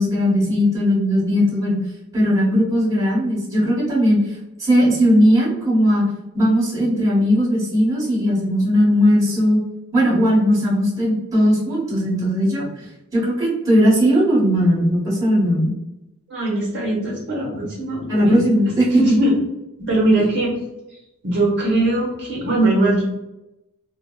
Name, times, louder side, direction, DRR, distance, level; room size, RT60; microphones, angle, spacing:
voice 1, 0.0-1.8 2.1-6.0 6.3-9.6 9.9-12.8 13.1-15.7 18.1-19.0, equal, 15° right, -8 dB, 1.4 m, -18 dB
voice 2, 16.3-18.5 18.9-19.4 19.9-20.5 21.2-23.0, right 1 dB, 55° right, -3 dB, 0.9 m, -20 dB
3.9 x 2.1 x 2.3 m, 0.92 s
head